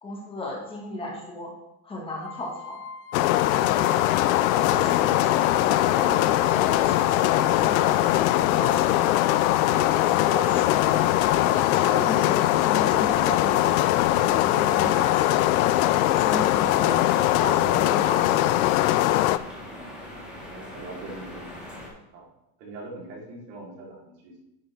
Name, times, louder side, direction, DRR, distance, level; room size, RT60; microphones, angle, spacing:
voice 1, 0.0-1.5 1.8-2.8 3.5-3.9 4.5-9.1 10.1-11.0 11.4-15.4 16.2-18.5, left 1 dB, 15° left, -1 dB, 1.4 m, -35 dB
sound 1, 2.2-17.1, left 6 dB, 35° left, 0.7 m, -38 dB
sound 2, 3.1-19.4, left 15 dB, 85° left, 0.6 m, -21 dB
sound 3, 3.5-21.9, left 1 dB, ahead, 1.9 m, -41 dB
voice 2, 20.5-21.5 22.1-22.3 22.6-24.4, right 2 dB, 75° right, -4 dB, 3.6 m, -42 dB
10.5 x 7.3 x 3.5 m, 0.87 s
cardioid pair, 175°, 41 cm